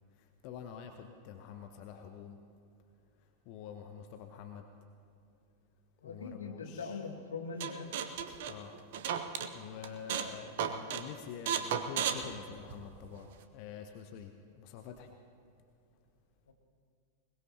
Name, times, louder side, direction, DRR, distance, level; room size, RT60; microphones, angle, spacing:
voice 1, 0.4-2.4 3.5-4.6 6.0-7.0 8.5-8.7 9.5-15.1, left 8 dB, 45° left, 5 dB, 0.9 m, -47 dB
voice 2, 6.0-7.9 16.5-16.6, left 4 dB, 70° left, 5 dB, 1.5 m, -41 dB
sound 1, 7.6-9.5 9.8-10.3 10.6-11.0 11.5-13.1, right 8 dB, 55° right, 0.9 m, -34 dB
21.5 x 20.5 x 2.9 m, 2.5 s
figure-of-eight pair, 90°, 0 cm